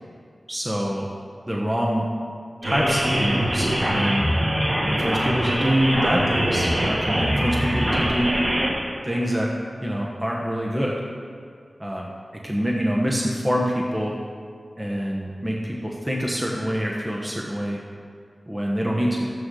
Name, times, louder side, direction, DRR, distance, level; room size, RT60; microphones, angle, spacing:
voice 1, 0.5-1.1 1.5-2.1 2.6-4.3 4.9-8.3 9.0-9.5 9.8-10.9 11.8-12.1 12.4-14.2 14.8-17.8 18.5-19.3, equal, 15° right, -2 dB, 1.2 m, -25 dB
sound 1, 2.6-8.7, equal, 40° right, 2.3 m, -23 dB
13.0 x 9.4 x 3.9 m, 2.2 s
wide cardioid pair, 60°, 0 cm